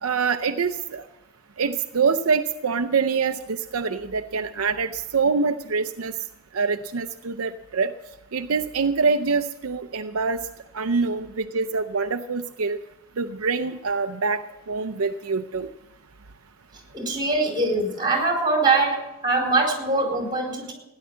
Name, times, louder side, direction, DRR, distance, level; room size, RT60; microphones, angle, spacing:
voice 1, 0.0-1.0 1.6-6.1 6.5-7.9 8.3-10.5 10.7-12.8 13.2-15.7, right 5 dB, 70° right, 7 dB, 0.6 m, -25 dB
voice 2, 16.9-20.7, right 3 dB, 20° right, 2 dB, 4.3 m, -23 dB
16.5 x 10.5 x 7.5 m, 0.93 s
head